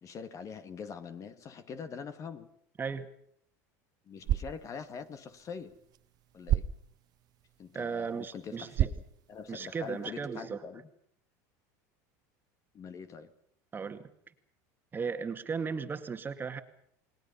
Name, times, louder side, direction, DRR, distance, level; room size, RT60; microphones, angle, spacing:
voice 1, 0.0-2.5 4.1-5.8 6.3-6.7 7.6-9.0 9.3-10.9 12.7-13.3, left 6 dB, 35° left, 2.2 m, -43 dB
sound 1, 4.1-10.1, right 12 dB, 50° right, 1.2 m, -36 dB
voice 2, 7.7-8.9 9.5-10.6 13.7-14.1 14.9-16.6, right 5 dB, 25° right, 2.1 m, -36 dB
29.5 x 20.0 x 5.6 m
supercardioid pair, 115°, 9 cm